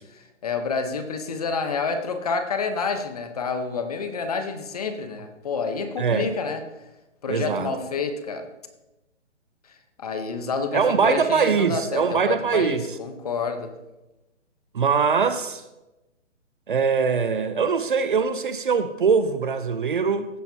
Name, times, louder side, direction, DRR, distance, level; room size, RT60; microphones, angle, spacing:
voice 1, 0.1-6.6 7.2-8.5 9.7-13.7, left 4 dB, 30° left, 0.8 m, -29 dB
voice 2, 6.0-6.3 7.3-7.7 10.7-12.9 14.7-15.6 16.7-20.3, right 5 dB, 45° right, 0.6 m, -22 dB
15.5 x 8.9 x 2.8 m
hypercardioid pair, 165°, 36 cm